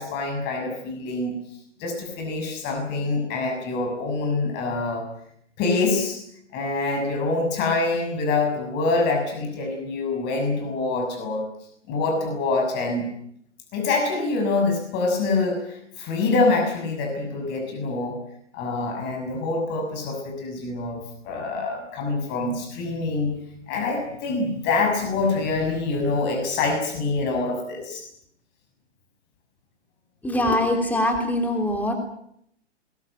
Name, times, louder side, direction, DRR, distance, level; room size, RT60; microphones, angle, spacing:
voice 1, 0.0-1.4 1.8-5.1 5.6-6.2 6.5-11.5 11.9-13.1 13.7-18.2 18.5-23.3 23.7-28.0, left 3 dB, 30° left, 3 dB, 6.3 m, -25 dB
voice 2, 30.2-31.9, left 1 dB, 5° left, 4 dB, 3.1 m, -23 dB
22.0 x 19.5 x 9.2 m, 0.72 s
hypercardioid pair, 130°, 36 cm